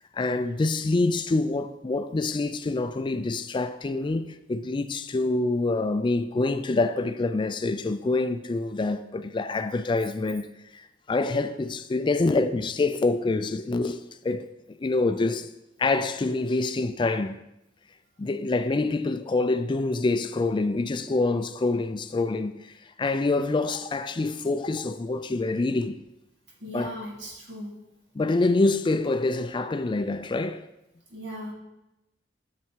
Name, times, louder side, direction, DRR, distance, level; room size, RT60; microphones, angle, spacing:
voice 1, 0.1-10.5 10.7-15.5 15.8-17.4 18.2-26.0 26.7-26.9 28.2-30.7, left 3 dB, 25° left, 0.4 m, -26 dB
voice 2, 26.6-27.7 31.1-31.5, equal, 70° right, 2.5 m, -37 dB
9.2 x 6.7 x 4.6 m
head